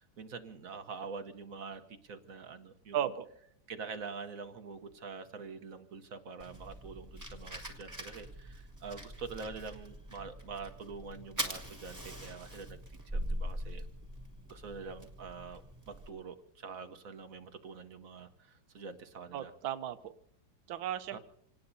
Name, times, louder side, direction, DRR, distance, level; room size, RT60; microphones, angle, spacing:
voice 1, 0.0-3.0 3.7-12.8 13.1-13.8 14.5-15.6 15.9-19.5 21.1-21.2, right 5 dB, 50° right, 8 dB, 1.2 m, -45 dB
voice 2, 2.9-3.3 19.3-20.1 20.7-21.2, right 10 dB, 80° right, 10 dB, 1.6 m, -35 dB
Fire, 6.4-16.1, equal, 10° right, 2.1 m, -42 dB
27.5 x 19.0 x 2.7 m, 0.70 s
omnidirectional pair, 2.2 m